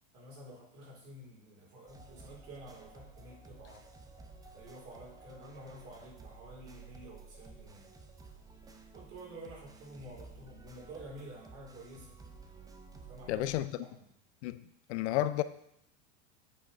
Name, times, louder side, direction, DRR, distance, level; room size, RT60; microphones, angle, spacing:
voice 1, 0.1-3.8 4.5-7.9 8.9-12.2 13.0-14.0, right 1 dB, 40° right, 4.0 m, -50 dB
sound 1, 1.9-13.6, right 4 dB, 10° right, 0.6 m, -53 dB
voice 2, 13.3-13.7 14.4-14.6 14.9-15.4, left 14 dB, 60° left, 0.5 m, -31 dB
8.6 x 5.1 x 5.2 m
supercardioid pair, 130°, 38 cm